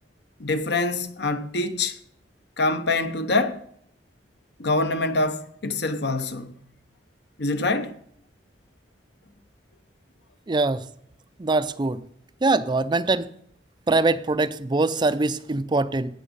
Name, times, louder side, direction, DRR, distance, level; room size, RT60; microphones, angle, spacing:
voice 1, 0.4-2.0 2.6-3.6 4.6-6.5 7.4-7.9, left 2 dB, 65° left, 1.0 m, -25 dB
voice 2, 10.5-10.8 11.4-12.0 12.4-13.3 13.9-16.2, right 3 dB, 25° right, 0.4 m, -23 dB
17.0 x 6.2 x 5.4 m
head